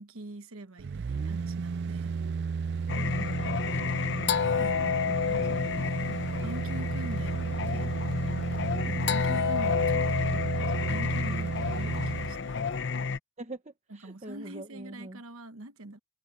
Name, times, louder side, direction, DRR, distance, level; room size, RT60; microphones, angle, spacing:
voice 1, 0.0-2.1 4.6-5.8 6.4-8.0 8.9-10.3 10.7-12.7 14.0-16.0, right 1 dB, 90° right, 1.2 m, -44 dB
sound 1, 0.8-12.4 12.8-12.9, right 5 dB, 55° right, 0.4 m, -33 dB
Singing, 2.9-13.2, left 5 dB, 55° left, 0.7 m, -30 dB
voice 2, 2.9-3.6 13.4-15.2, right 1 dB, 35° right, 1.0 m, -43 dB
head